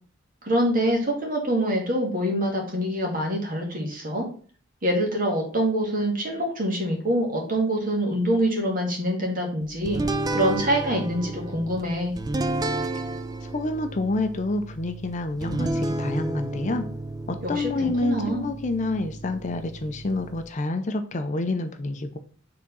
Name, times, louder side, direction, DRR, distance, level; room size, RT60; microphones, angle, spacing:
voice 1, 0.4-4.2 4.8-10.0 10.3-12.1 17.4-18.4, right 1 dB, 45° right, 0 dB, 1.8 m, -25 dB
sound 1, 9.9-20.5, right 2 dB, 20° right, 0.3 m, -31 dB
voice 2, 13.4-16.8 17.3-22.2, left 2 dB, 35° left, 8 dB, 0.5 m, -28 dB
4.8 x 3.7 x 5.4 m, 0.43 s
head